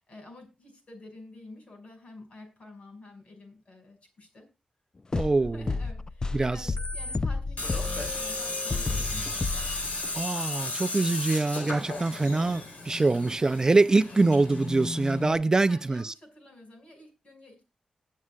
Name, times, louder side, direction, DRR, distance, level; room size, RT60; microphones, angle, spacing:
voice 1, 0.0-4.5 5.1-5.2 5.5-9.5 13.6-14.1 15.3-17.6, left 2 dB, 60° left, 5.7 m, -50 dB
sound 1, 5.1-10.0, left 3 dB, 30° left, 0.4 m, -32 dB
voice 2, 5.1-5.7 6.3-6.7 10.1-16.1, right 3 dB, 30° right, 0.4 m, -24 dB
Tools, 7.6-15.4, left 2 dB, 85° left, 4.6 m, -34 dB
22.0 x 7.5 x 2.4 m
wide cardioid pair, 95°, 2 cm